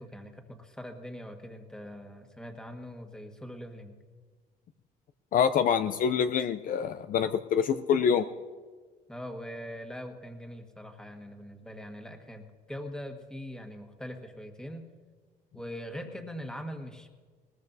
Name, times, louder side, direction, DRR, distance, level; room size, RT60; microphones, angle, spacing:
voice 1, 0.0-4.0 9.1-14.9 15.5-17.1, equal, 5° left, 4 dB, 1.6 m, -42 dB
voice 2, 5.3-8.2, left 7 dB, 55° left, 10 dB, 0.5 m, -26 dB
20.5 x 19.0 x 2.7 m, 1.5 s
cardioid pair, 110°, 17 cm